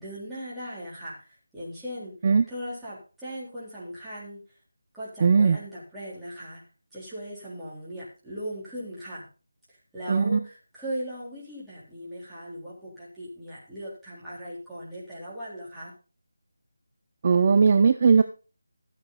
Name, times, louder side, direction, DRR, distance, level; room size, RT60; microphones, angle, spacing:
voice 1, 0.0-2.1 2.5-4.4 4.9-6.6 6.9-9.3 9.9-15.9, equal, 5° right, -11 dB, 3.8 m, -38 dB
voice 2, 5.2-5.6 10.1-10.4 17.2-18.2, right 5 dB, 30° right, 9 dB, 0.6 m, -18 dB
13.5 x 8.3 x 4.1 m, 0.35 s
figure-of-eight pair, 170°, 0 cm